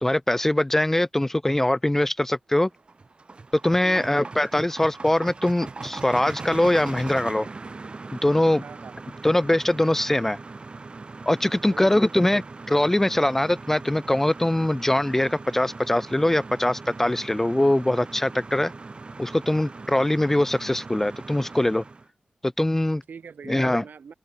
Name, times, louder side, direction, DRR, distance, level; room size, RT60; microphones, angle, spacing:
voice 1, 0.0-2.7 3.6-7.5 8.2-8.6 9.2-10.4 11.3-18.7 19.2-21.8 22.4-23.0 23.5-23.8, left 1 dB, 10° left, 0.4 m, -22 dB
Lister Startup And Idle, 2.7-22.1, right 3 dB, 35° right, 3.3 m, -40 dB
voice 2, 3.8-4.3 8.6-9.0 11.7-12.1 23.1-24.1, right 6 dB, 75° right, 6.9 m, -43 dB
open air
wide cardioid pair, 145°, 3 cm